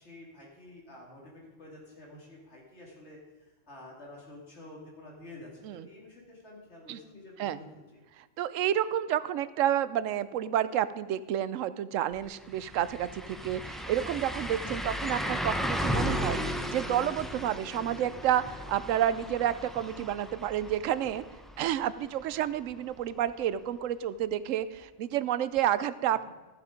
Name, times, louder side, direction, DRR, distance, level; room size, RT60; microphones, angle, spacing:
voice 1, 0.0-7.7 26.2-26.3, left 1 dB, 60° left, -3 dB, 3.1 m, -49 dB
voice 2, 8.2-21.2 21.6-26.3, right 11 dB, 90° right, 15 dB, 0.9 m, -30 dB
sound 1, 12.1-12.2 12.5-22.3 22.7-22.8 25.6-25.7, equal, ahead, 0.4 m, -35 dB
14.0 x 7.3 x 5.1 m, 1.2 s
omnidirectional pair, 1.3 m